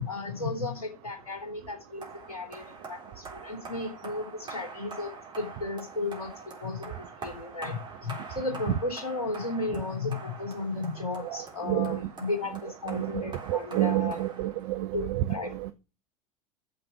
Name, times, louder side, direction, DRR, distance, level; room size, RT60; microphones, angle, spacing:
voice 1, 0.0-6.3 6.6-6.9 7.2-14.2 14.9-15.5, left 3 dB, 75° left, 3.5 m, -34 dB
sound 1, 2.0-15.0, right 4 dB, 25° right, 3.8 m, -45 dB
voice 2, 11.2-12.1 12.9-15.7, right 14 dB, 50° right, 0.7 m, -30 dB
9.5 x 6.9 x 5.9 m
figure-of-eight pair, 80°, 19 cm